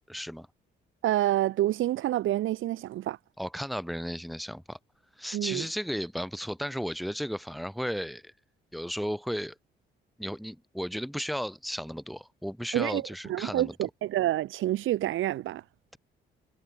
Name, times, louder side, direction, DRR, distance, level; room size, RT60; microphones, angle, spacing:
voice 1, 0.1-0.5 3.4-4.8 5.2-8.3 8.7-9.6 10.2-13.7, equal, ahead, 7.1 m, -34 dB
voice 2, 1.0-3.2 5.3-5.7 12.7-13.0 13.3-15.6, right 14 dB, 85° right, 6.9 m, -28 dB
cardioid pair, 90°, 20 cm